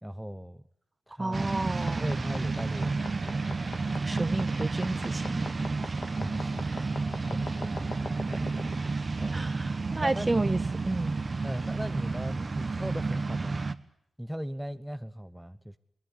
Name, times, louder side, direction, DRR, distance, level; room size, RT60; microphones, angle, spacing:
voice 1, 0.0-0.6 1.1-1.5 2.0-3.5 6.1-6.6 6.9-8.0 8.2-8.4 8.8-9.5 10.0-10.4 11.4-13.6 14.2-15.8, equal, 5° right, 9 dB, 1.0 m, -38 dB
voice 2, 1.2-2.1 4.0-5.5 6.6-6.9 9.3-11.2, right 2 dB, 25° right, 14 dB, 1.3 m, -32 dB
sound 1, 1.3-13.8, right 3 dB, 40° right, 1.3 m, -31 dB
sound 2, 1.7-13.0, left 4 dB, 65° left, 2.5 m, -46 dB
23.0 x 19.0 x 10.0 m, 0.76 s
cardioid pair, 80°, 0 cm